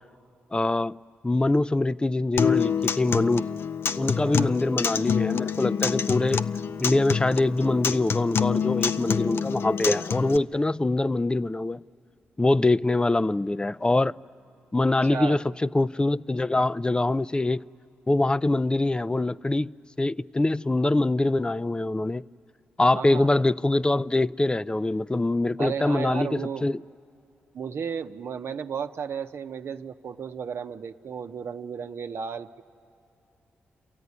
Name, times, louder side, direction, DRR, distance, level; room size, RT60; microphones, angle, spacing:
voice 1, 0.5-0.9 1.2-3.4 4.0-6.4 6.8-11.8 12.4-14.1 14.7-17.6 18.1-19.7 20.0-22.2 22.8-26.8, left 2 dB, 20° left, 0.5 m, -24 dB
Acoustic guitar, 2.4-10.4, left 6 dB, 60° left, 0.6 m, -27 dB
voice 2, 4.2-4.5 15.1-15.4 22.9-23.3 25.6-26.6 27.5-32.6, right 6 dB, 65° right, 0.9 m, -33 dB
29.5 x 13.5 x 9.6 m
supercardioid pair, 45°, 5 cm